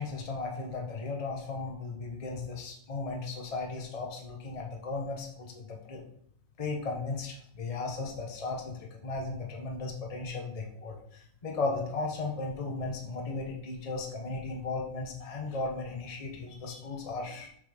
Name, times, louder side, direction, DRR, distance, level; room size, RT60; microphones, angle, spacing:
voice 1, 0.0-6.0 6.6-17.5, left 3 dB, 25° left, 0 dB, 0.8 m, -36 dB
6.8 x 5.9 x 3.5 m, 0.67 s
omnidirectional pair, 2.2 m